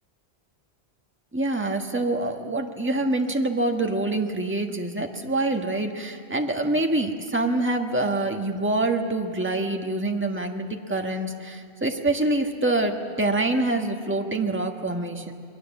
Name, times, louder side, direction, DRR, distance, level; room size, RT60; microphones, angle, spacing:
voice 1, 1.3-15.3, right 2 dB, 10° right, 3 dB, 1.4 m, -25 dB
28.5 x 21.5 x 7.2 m, 2.1 s
omnidirectional pair, 1.1 m